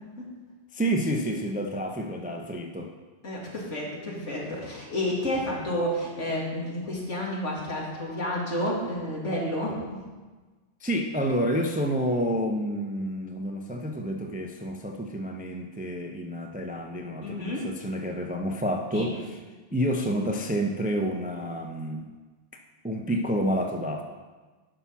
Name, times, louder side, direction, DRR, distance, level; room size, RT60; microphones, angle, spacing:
voice 1, 0.7-2.9 10.8-19.4 19.7-22.1 22.8-24.0, equal, 10° right, 3 dB, 0.4 m, -29 dB
voice 2, 3.2-10.0 17.2-17.7 18.9-19.1, left 1 dB, 75° left, -3 dB, 2.4 m, -30 dB
10.0 x 5.9 x 5.8 m, 1.3 s
omnidirectional pair, 1.3 m